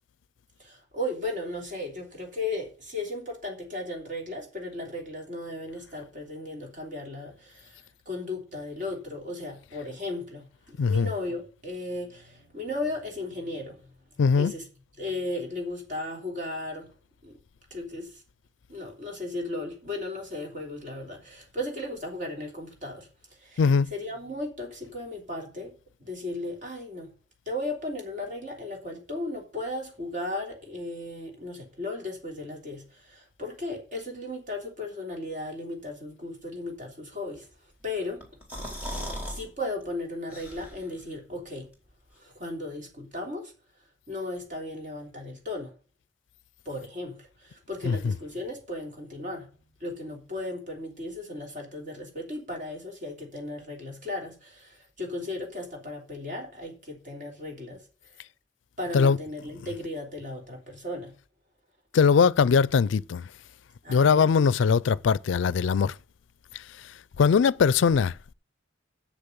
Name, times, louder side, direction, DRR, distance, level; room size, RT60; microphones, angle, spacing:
voice 1, 0.6-7.8 8.0-13.8 14.3-14.6 15.0-16.9 17.2-17.4 17.7-18.2 18.7-23.1 23.4-25.7 26.0-27.1 27.5-37.5 37.8-38.2 38.9-41.7 42.2-43.5 44.1-45.7 46.6-49.5 49.8-57.8 58.8-61.2 63.8-64.2, left 2 dB, 45° right, 3.2 m, -36 dB
voice 2, 10.8-11.1 14.2-14.5 23.6-23.9 47.9-48.1 58.9-59.2 61.9-63.3 63.9-65.9 66.5-66.6 67.2-68.1, left 6 dB, 80° left, 0.4 m, -21 dB
sound 1, 38.2-39.4 39.8-39.9 40.3-41.0, equal, 10° right, 3.3 m, -36 dB
7.3 x 6.8 x 7.9 m
head